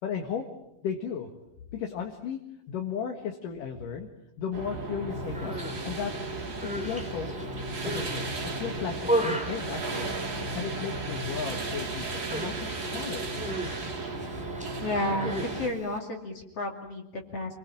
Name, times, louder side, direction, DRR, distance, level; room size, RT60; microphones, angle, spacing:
voice 1, 0.0-0.4 0.8-1.3 1.7-2.4 2.7-4.1 4.4-5.5 5.8-6.1 6.8-7.4 7.8-8.2 8.6-10.1 10.5-13.3, left 7 dB, 70° left, 3 dB, 3.2 m, -35 dB
sound 1, 4.5-15.7, right 2 dB, 35° right, 3.5 m, -34 dB
Human voice, 5.2-5.8 6.4-8.2 8.6-10.6 10.9-11.4 11.6-11.8 12.3-16.0, right 1 dB, 5° right, 1.7 m, -35 dB
voice 2, 14.8-17.6, left 2 dB, 45° left, 2 dB, 3.3 m, -32 dB
28.0 x 22.5 x 8.8 m, 0.88 s
omnidirectional pair, 4.2 m